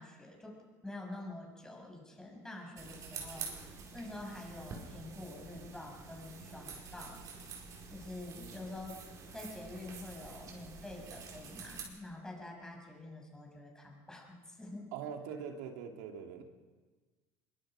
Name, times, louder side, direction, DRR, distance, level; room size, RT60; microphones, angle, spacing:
voice 1, 0.0-7.2 7.9-14.9, left 2 dB, 10° left, 0 dB, 6.4 m, -47 dB
sound 1, 2.8-11.8, right 5 dB, 45° right, 4.9 m, -48 dB
voice 2, 14.9-16.4, right 7 dB, 85° right, 3 dB, 2.7 m, -42 dB
24.0 x 22.5 x 5.1 m, 1.3 s
supercardioid pair, 125°, 8 cm